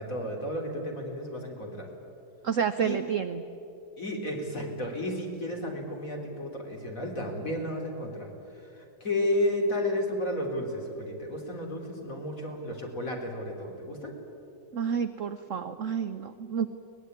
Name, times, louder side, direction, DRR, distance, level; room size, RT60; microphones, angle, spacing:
voice 1, 0.0-1.9 2.8-3.0 4.0-8.3 8.5-14.1, left 1 dB, 40° left, 0 dB, 4.0 m, -32 dB
voice 2, 2.4-3.4 14.7-16.7, right 7 dB, 60° right, 10 dB, 0.8 m, -29 dB
23.0 x 19.5 x 9.5 m, 2.8 s
omnidirectional pair, 2.3 m